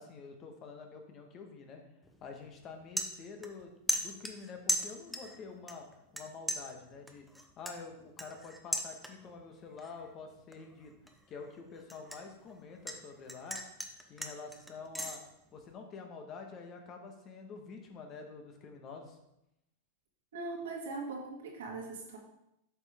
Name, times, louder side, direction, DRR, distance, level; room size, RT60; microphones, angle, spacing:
voice 1, 0.0-1.8 2.2-5.9 6.1-7.2 7.6-11.0 11.3-13.6 14.1-15.2 15.5-19.2, left 4 dB, 35° left, 4 dB, 1.3 m, -47 dB
sound 1, 2.0-2.2 2.6-3.6 3.9-5.4 5.7-6.2 6.5-9.4 9.8-10.1 10.5-13.0 13.3-15.2, equal, ahead, 0.7 m, -37 dB
voice 2, 20.3-22.2, right 3 dB, 85° right, -1 dB, 2.2 m, -40 dB
8.0 x 5.5 x 3.6 m, 0.83 s
supercardioid pair, 140°, 0 cm